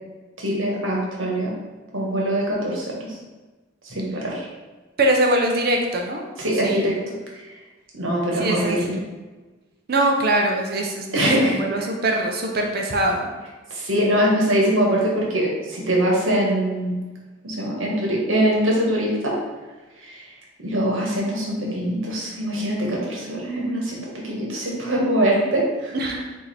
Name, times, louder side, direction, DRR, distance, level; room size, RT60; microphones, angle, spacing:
voice 1, 0.4-1.5 1.9-3.2 3.8-4.5 6.4-6.9 7.9-9.0 11.1-11.6 13.7-17.0 17.4-19.3 20.0-20.2 20.6-25.9, right 1 dB, 75° right, -3 dB, 1.2 m, -23 dB
voice 2, 5.0-6.3 6.6-6.9 8.3-8.9 9.9-13.3 25.9-26.4, right 1 dB, 50° right, 1 dB, 0.5 m, -22 dB
4.8 x 2.7 x 4.1 m, 1.2 s
head